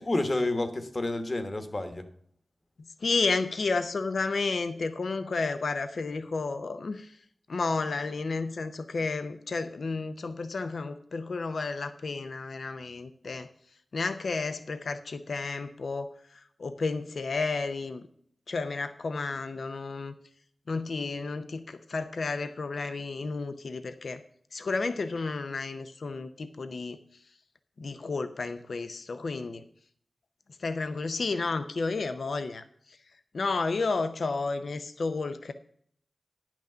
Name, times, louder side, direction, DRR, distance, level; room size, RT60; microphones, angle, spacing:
voice 1, 0.0-2.1, left 2 dB, 40° left, 1.2 m, -29 dB
voice 2, 3.0-7.2 7.5-13.5 13.9-18.0 18.5-20.1 20.7-24.2 24.5-27.0 27.8-29.6 30.6-33.0 33.3-35.5, left 3 dB, 80° left, 0.6 m, -32 dB
10.5 x 6.1 x 6.7 m
wide cardioid pair, 75°, 0 cm